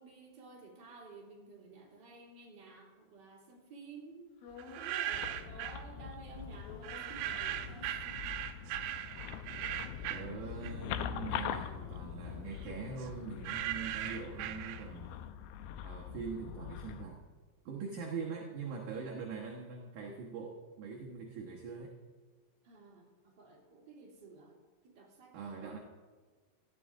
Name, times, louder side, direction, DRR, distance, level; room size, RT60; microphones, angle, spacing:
voice 1, 0.0-4.3 4.8-8.2 17.8-18.1 22.6-24.6 24.8-25.8, right 3 dB, 30° right, -3 dB, 2.7 m, -53 dB
sound 1, 4.4-5.6 5.9-8.5 8.9-9.0 9.1-13.6 14.0-18.0, left 5 dB, 60° left, 3.1 m, -57 dB
sound 2, 4.6-5.8 6.8-11.1 11.4-15.2, right 12 dB, 80° right, 2.8 m, -39 dB
sound 3, 5.1-17.1, left 8 dB, 85° left, 2.1 m, -43 dB
voice 2, 10.1-15.1 15.8-17.2 17.7-21.9 25.3-25.8, right 5 dB, 60° right, -2 dB, 2.1 m, -43 dB
18.5 x 14.0 x 3.7 m, 1.5 s
omnidirectional pair, 5.0 m